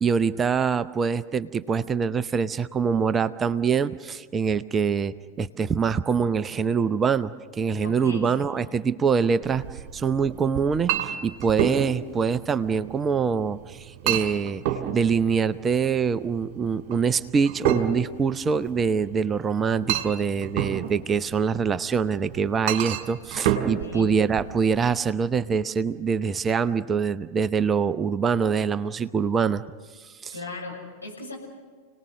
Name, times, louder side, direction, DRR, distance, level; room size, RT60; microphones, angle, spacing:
voice 1, 0.0-9.6 9.9-14.6 14.9-29.6 30.2-30.3, right 6 dB, 20° right, 15 dB, 0.6 m, -24 dB
voice 2, 7.8-8.7 23.8-24.1 30.3-31.4, left 2 dB, 85° left, -3 dB, 6.9 m, -38 dB
Chink clink, 9.4-25.0, right 11 dB, 45° right, 2.2 m, -31 dB
30.0 x 19.0 x 6.4 m, 1.5 s
figure-of-eight pair, 90°, 0 cm